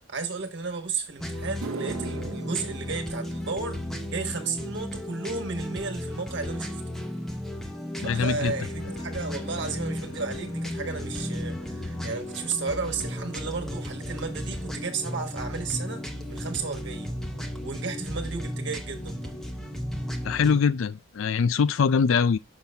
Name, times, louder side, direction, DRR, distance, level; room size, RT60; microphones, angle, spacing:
voice 1, 0.1-3.8 4.1-6.8 8.0-17.1 17.6-19.3, right 4 dB, 55° right, 1.3 m, -33 dB
sound 1, 0.9-1.0 1.4-9.9 10.2-10.6 11.4-11.5 14.2-14.3 16.0-16.1 16.3-16.5 16.8-17.3 17.7-17.8 18.3-18.4, right 3 dB, 85° right, 0.7 m, -44 dB
sound 2, 1.2-20.6, equal, ahead, 0.7 m, -35 dB
voice 2, 8.0-8.5 20.2-22.4, left 6 dB, 70° left, 0.4 m, -23 dB
sound 3, 8.1-20.7, left 2 dB, 85° left, 1.4 m, -47 dB
6.0 x 5.6 x 3.4 m
head